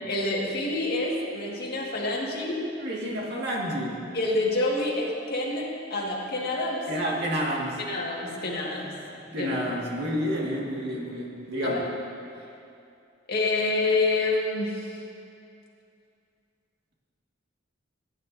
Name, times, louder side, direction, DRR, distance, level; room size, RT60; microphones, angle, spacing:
voice 1, 0.1-2.6 4.1-6.8 7.8-8.9 9.4-9.6 11.6-11.8 13.3-15.0, left 2 dB, 55° left, -3 dB, 1.8 m, -27 dB
voice 2, 2.8-4.1 6.9-7.8 9.3-11.9, equal, 60° right, -2 dB, 1.9 m, -29 dB
17.5 x 10.0 x 2.7 m, 2.5 s
head